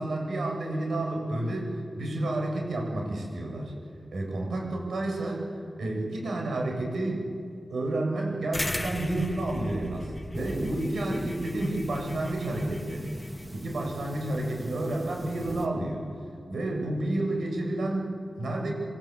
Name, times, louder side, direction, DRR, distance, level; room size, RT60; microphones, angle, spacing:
voice 1, 0.0-3.7 4.1-5.5 5.8-7.3 7.7-13.1 13.5-16.1 16.5-18.7, right 1 dB, 85° right, 0 dB, 7.6 m, -30 dB
sound 1, 8.5-13.4, left 1 dB, 15° left, 1.2 m, -38 dB
sound 2, 10.3-15.7, equal, 15° right, 2.4 m, -39 dB
27.5 x 23.5 x 8.4 m, 2.3 s
wide cardioid pair, 130°, 0 cm